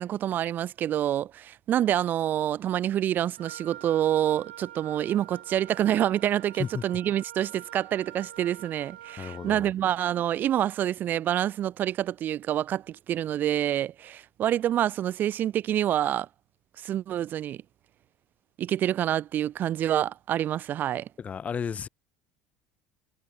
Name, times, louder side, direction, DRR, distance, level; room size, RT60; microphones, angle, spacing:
voice 1, 0.0-16.3 16.8-17.6 18.6-21.1, right 11 dB, 50° right, 3.0 m, -27 dB
Wind instrument woodwind instrument, 3.4-9.6, right 12 dB, 85° right, 4.5 m, -46 dB
voice 2, 9.2-9.7 21.2-21.9, left 7 dB, 35° left, 1.3 m, -33 dB
hypercardioid pair, 75°, 4 cm